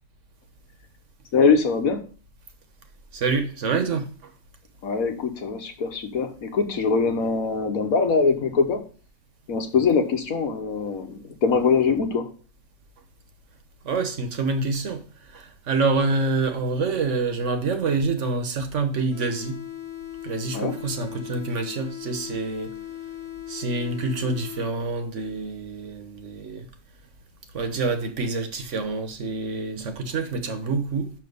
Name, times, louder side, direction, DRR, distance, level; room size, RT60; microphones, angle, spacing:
voice 1, 1.3-2.0 4.8-8.8 9.5-12.3 20.5-20.7, left 5 dB, 85° left, 1.6 m, -22 dB
voice 2, 3.1-4.3 13.8-15.0 15.3-19.6 20.2-22.8 23.5-26.7 27.5-31.1, right 3 dB, 60° right, 1.4 m, -27 dB
sound 1, 19.1-25.1, left 12 dB, 25° left, 0.7 m, -38 dB
6.0 x 5.8 x 5.3 m
omnidirectional pair, 1.4 m